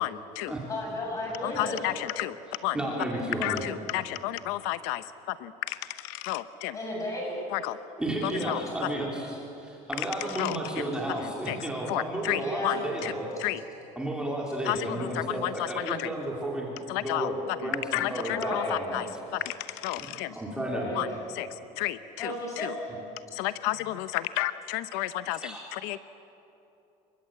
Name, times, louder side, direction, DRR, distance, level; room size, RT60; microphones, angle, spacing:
voice 1, 0.0-0.5 1.4-2.4 2.6-2.8 3.1-6.8 7.5-7.8 8.2-8.6 10.0-10.6 11.2-11.6 11.9-13.1 13.4-13.6 14.6-16.1 16.9-20.4 20.9-21.1 21.3-22.7 23.3-26.0, left 16 dB, 85° left, 13 dB, 0.8 m, -32 dB
voice 2, 0.7-1.7 6.7-7.4 12.3-12.8 18.3-19.1 20.6-21.2 22.2-23.0, left 1 dB, 20° left, -1 dB, 7.5 m, -34 dB
voice 3, 2.7-3.6 8.0-13.3 14.0-16.7 17.0-17.4 17.6-19.1 20.0-20.1 20.3-20.9 25.4-25.6, right 1 dB, 5° right, -2 dB, 3.0 m, -32 dB
28.0 x 23.0 x 8.7 m, 2.9 s
cardioid pair, 180°, 15 cm